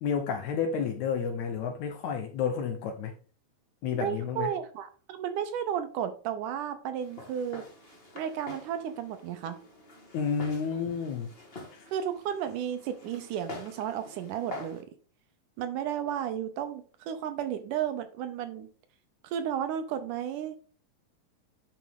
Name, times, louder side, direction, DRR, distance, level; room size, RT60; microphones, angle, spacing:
voice 1, 0.0-3.1 3.8-4.5 10.1-11.3 11.7-11.9, left 6 dB, 70° left, 1.9 m, -31 dB
voice 2, 3.9-7.6 8.2-9.6 11.9-14.9 15.6-18.7 19.2-20.6, right 9 dB, 75° right, 2.1 m, -33 dB
Walk footsteps, 7.0-14.8, left 2 dB, 35° left, 0.9 m, -46 dB
10.0 x 4.7 x 3.6 m
omnidirectional pair, 4.0 m